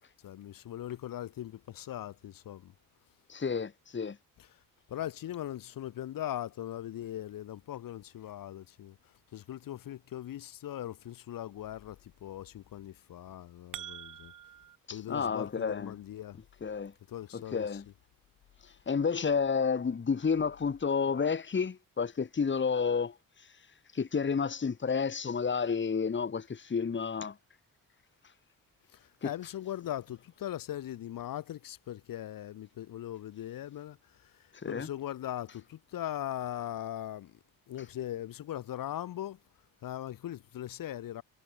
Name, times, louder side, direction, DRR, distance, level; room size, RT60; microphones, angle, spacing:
voice 1, 0.0-2.7 4.4-4.6 4.9-14.3 14.9-16.4 17.1-17.8 28.9-37.4 37.7-39.4 39.8-41.2, left 12 dB, 75° left, 5.4 m, -40 dB
voice 2, 3.3-4.2 14.9-15.9 16.6-16.9 17.3-17.8 18.9-23.1 23.9-27.4 29.2-29.3 34.6-34.9, left 5 dB, 35° left, 2.3 m, -30 dB
sound 1, 13.3-14.8, right 10 dB, 65° right, 3.7 m, -45 dB
cardioid pair, 75°, 34 cm